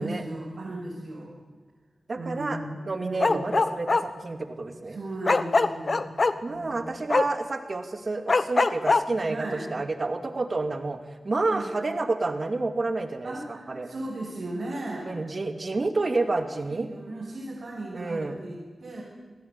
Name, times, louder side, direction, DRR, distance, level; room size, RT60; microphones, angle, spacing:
voice 1, 0.0-1.3 2.1-3.5 4.9-6.2 6.5-7.1 9.3-9.7 11.5-11.8 13.2-15.1 16.6-19.0, right 2 dB, 60° right, -5 dB, 6.6 m, -36 dB
voice 2, 2.1-2.6 2.9-5.0 6.4-11.0 11.2-13.9 15.1-16.9 17.9-18.4, right 3 dB, 40° right, 7 dB, 2.5 m, -29 dB
Bark, 3.2-4.0 5.3-6.3 7.1-7.2 8.3-9.0, left 3 dB, 40° left, 1.1 m, -21 dB
27.5 x 20.0 x 9.8 m, 1.3 s
wide cardioid pair, 140°, 0 cm